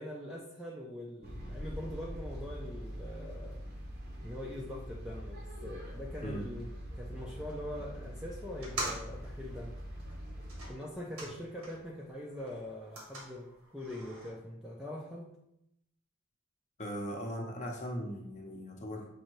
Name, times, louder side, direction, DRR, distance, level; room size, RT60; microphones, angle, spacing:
voice 1, 0.0-3.6 4.2-9.8 10.7-15.4, left 1 dB, 5° right, -3 dB, 0.4 m, -43 dB
sound 1, 1.2-10.7, equal, 45° right, 0.7 m, -43 dB
sound 2, 8.5-12.0 12.3-14.3, right 2 dB, 80° right, 1.3 m, -44 dB
voice 2, 16.8-19.1, equal, 35° left, 0 dB, 0.7 m, -39 dB
6.2 x 2.7 x 3.0 m, 0.81 s
head